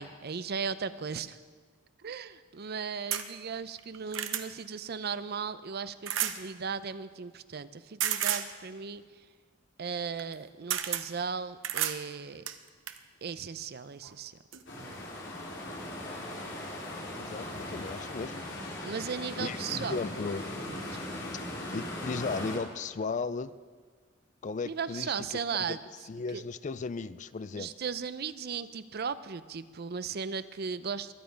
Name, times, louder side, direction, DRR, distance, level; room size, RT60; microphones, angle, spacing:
voice 1, 0.0-1.4 2.0-9.0 9.8-12.5 13.2-14.4 14.7-15.0 18.8-20.0 20.7-20.9 24.6-25.8 26.3-26.4 27.5-31.1, right 6 dB, 50° right, 14 dB, 0.5 m, -36 dB
sound 1, 3.1-3.3 3.8-4.5 6.1-6.4 8.0-8.5 10.2-10.3 10.7-11.1 11.6-12.0 12.5-13.0 14.0-14.1 14.5-14.6, right 10 dB, 70° right, 0.9 m, -31 dB
sound 2, 14.7-22.6, left 1 dB, 60° left, 3.6 m, -39 dB
voice 2, 17.2-18.4 19.4-20.5 21.3-21.4 21.7-23.5 24.4-25.8 26.1-27.7, left 4 dB, 40° left, 15 dB, 0.4 m, -36 dB
22.0 x 9.3 x 5.1 m, 1.5 s
head